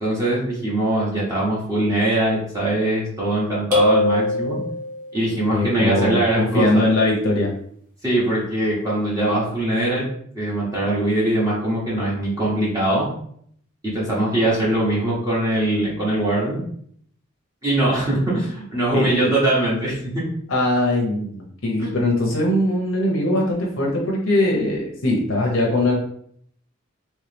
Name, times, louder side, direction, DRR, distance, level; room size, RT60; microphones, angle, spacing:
voice 1, 0.0-4.6 5.1-6.8 8.0-10.1 10.3-13.1 13.8-16.6 17.6-20.2 21.8-21.9, right 1 dB, 15° right, -7 dB, 1.1 m, -22 dB
sound 1, 3.7-5.2, left 3 dB, 45° right, 1.2 m, -21 dB
voice 2, 5.5-7.5 18.9-19.1 20.5-25.9, left 1 dB, 85° left, -1 dB, 0.9 m, -21 dB
3.2 x 3.2 x 3.3 m, 0.64 s
head